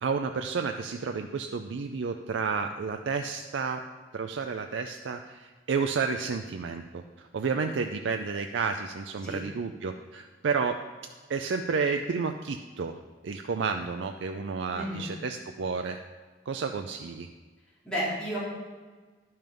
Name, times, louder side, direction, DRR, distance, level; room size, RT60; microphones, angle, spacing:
voice 1, 0.0-3.9 4.1-7.0 7.3-10.8 11.3-16.0 16.5-17.3, right 5 dB, 80° right, 5 dB, 0.4 m, -31 dB
voice 2, 14.7-15.0 17.8-18.4, equal, 5° left, -10 dB, 3.4 m, -32 dB
10.5 x 5.6 x 5.2 m, 1.4 s
head